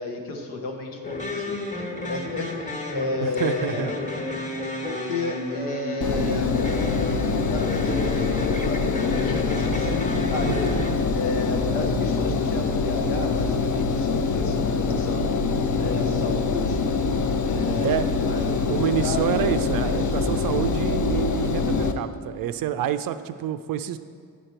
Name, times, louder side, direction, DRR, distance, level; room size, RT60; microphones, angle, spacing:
voice 1, 0.0-4.0 4.8-10.8 11.1-15.5 15.8-17.0 17.5-18.0 18.3-19.5 19.8-20.1, left 2 dB, 85° left, 1 dB, 1.1 m, -32 dB
sound 1, 1.0-10.9, left 2 dB, 15° left, 1.3 m, -32 dB
voice 2, 3.2-3.9 10.5-10.6 17.8-18.1 18.7-24.0, right 10 dB, 50° right, 11 dB, 0.4 m, -27 dB
Engine, 6.0-21.9, left 4 dB, 40° left, 0.7 m, -24 dB
8.6 x 5.1 x 4.4 m, 2.1 s
hypercardioid pair, 50°, 47 cm